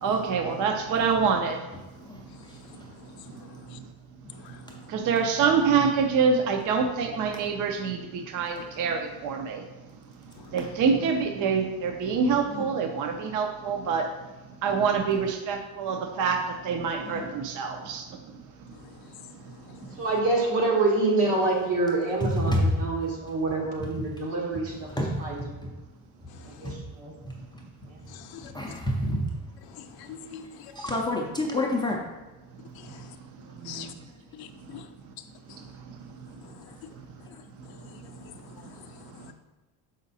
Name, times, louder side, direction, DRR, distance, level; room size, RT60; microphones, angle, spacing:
voice 1, 0.0-1.6 3.4-3.5 4.9-9.7 10.5-14.1 14.6-18.2 19.8-19.9 35.9-36.0 39.2-39.3, right 5 dB, 45° right, 5 dB, 0.6 m, -26 dB
voice 2, 3.0-3.8 4.3-4.9 10.4-10.6 18.7-20.0 26.3-26.7 28.1-28.8 29.6-30.7 32.7-33.2 33.6-33.9 34.3-34.9 35.2-35.6 36.4-36.8 37.2-37.4 37.6-39.3, left 9 dB, 60° left, 8 dB, 0.6 m, -47 dB
voice 3, 20.0-25.7 26.4-27.1 27.9-28.1 33.5-33.9, right 2 dB, 75° right, -2 dB, 2.0 m, -27 dB
voice 4, 28.5-29.3 30.8-32.0, left 1 dB, 10° left, -2 dB, 0.4 m, -27 dB
6.2 x 5.1 x 4.1 m, 1.2 s
cardioid pair, 170°, 43 cm